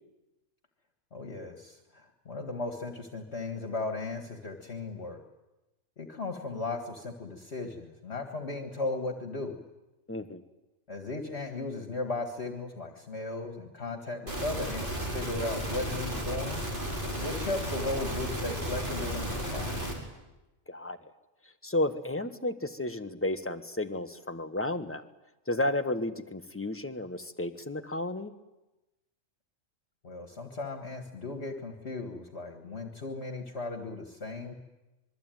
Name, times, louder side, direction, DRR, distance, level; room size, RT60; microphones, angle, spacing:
voice 1, 1.1-5.2 6.0-9.6 10.9-16.6 17.2-19.7 30.0-34.5, left 3 dB, 55° left, 5 dB, 2.0 m, -36 dB
voice 2, 10.1-10.4 20.7-21.1 21.4-25.0 25.5-28.3, left 1 dB, 10° left, 8 dB, 1.3 m, -32 dB
sound 1, 14.3-19.9, equal, 40° right, 5.3 m, -34 dB
25.5 x 22.5 x 9.2 m, 1.0 s
omnidirectional pair, 1.4 m